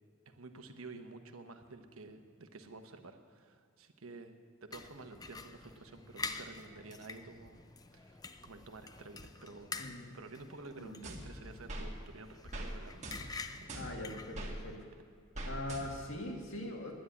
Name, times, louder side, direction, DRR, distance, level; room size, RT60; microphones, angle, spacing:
voice 1, 0.3-4.3 4.6-7.6 7.9-13.8, right 3 dB, 80° right, 7 dB, 1.1 m, -51 dB
sound 1, 4.7-14.8, left 4 dB, 20° left, 0.5 m, -47 dB
voice 2, 9.8-10.1 10.8-11.0 13.7-14.8 15.5-16.9, left 1 dB, 65° left, 1 dB, 2.3 m, -42 dB
sound 2, 11.0-11.9 12.5-12.7 13.0-14.6 15.4-16.2, right 1 dB, 35° right, 1.5 m, -42 dB
10.0 x 10.0 x 9.7 m, 2.1 s
head